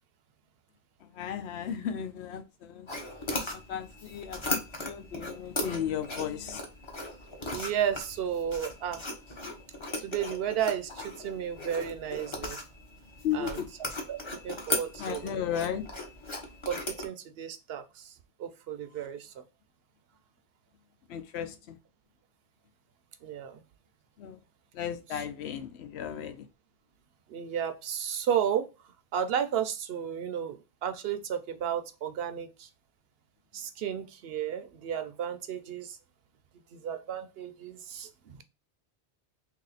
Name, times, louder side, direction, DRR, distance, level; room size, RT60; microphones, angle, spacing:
voice 1, 1.0-2.9 3.5-6.6 13.2-13.7 15.0-15.9 21.1-21.8 24.2-24.4 24.7-26.5, left 9 dB, 80° left, 0.9 m, -35 dB
sound 1, 2.9-17.1, left 2 dB, 30° left, 0.8 m, -38 dB
voice 2, 7.5-9.0 10.0-12.6 13.3-13.6 14.1-15.3 16.7-19.4 23.2-23.6 25.1-25.2 27.3-28.7 29.1-32.7 33.5-36.0 36.7-38.4, right 9 dB, 70° right, 0.8 m, -33 dB
3.0 x 2.8 x 3.9 m
omnidirectional pair, 1.1 m